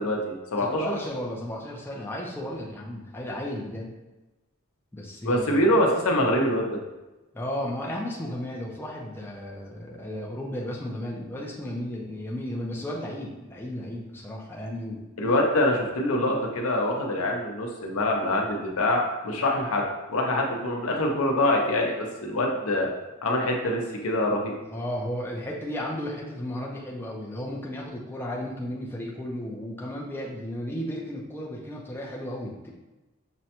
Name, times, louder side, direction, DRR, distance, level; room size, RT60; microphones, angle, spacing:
voice 1, 0.0-0.8 5.2-6.7 15.2-22.0 22.2-22.9 23.2-24.5, left 1 dB, 80° left, 1 dB, 0.7 m, -24 dB
voice 2, 0.6-3.9 4.9-5.6 7.3-15.0 24.7-32.7, left 1 dB, 10° left, -3 dB, 0.4 m, -34 dB
6.1 x 2.1 x 2.8 m, 1.1 s
head